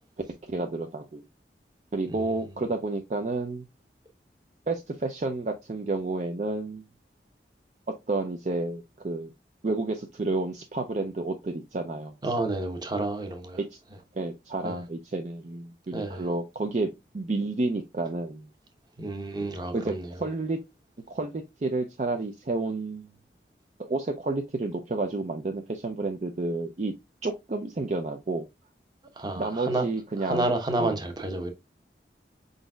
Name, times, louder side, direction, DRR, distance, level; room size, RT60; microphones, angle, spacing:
voice 1, 0.5-1.2 1.9-3.7 4.7-6.8 8.1-9.3 9.6-12.2 13.6-13.8 14.1-16.9 17.1-18.5 19.7-20.6 21.1-23.1 23.8-26.9 27.2-28.5 29.4-30.5 30.8-30.9, right 2 dB, 40° right, 0.4 m, -30 dB
voice 2, 12.2-13.6 14.6-14.8 15.9-16.3 19.0-20.1 29.2-29.9 30.2-31.5, right 2 dB, 25° right, 0.8 m, -30 dB
5.1 x 3.9 x 2.2 m
head